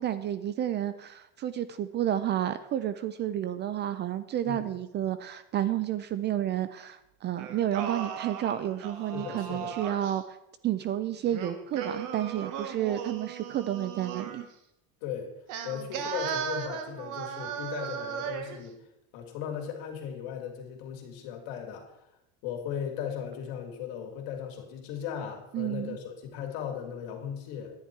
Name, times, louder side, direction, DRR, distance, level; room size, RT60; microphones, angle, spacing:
voice 1, 0.0-10.4 10.6-14.4 25.5-26.0, right 11 dB, 30° right, 14 dB, 0.4 m, -31 dB
Singing, 7.4-10.2 11.3-14.5 15.5-18.6, right 8 dB, 60° right, 1.3 m, -36 dB
voice 2, 9.1-9.8 15.0-15.3 15.6-18.8 19.1-21.9 22.4-27.7, left 8 dB, 65° left, 2 dB, 2.6 m, -37 dB
10.5 x 9.8 x 4.5 m, 0.84 s
cardioid pair, 140°, 37 cm